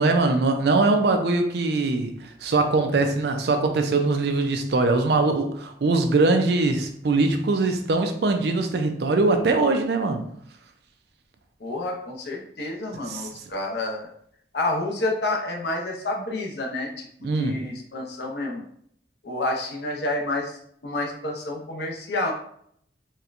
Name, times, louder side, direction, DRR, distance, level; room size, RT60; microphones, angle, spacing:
voice 1, 0.0-10.2 13.1-13.2 17.2-17.6, right 3 dB, 65° right, 6 dB, 0.4 m, -22 dB
voice 2, 11.6-14.1 14.5-18.6 19.2-22.3, left 2 dB, 65° left, 1 dB, 0.7 m, -29 dB
4.2 x 2.2 x 2.5 m, 0.67 s
head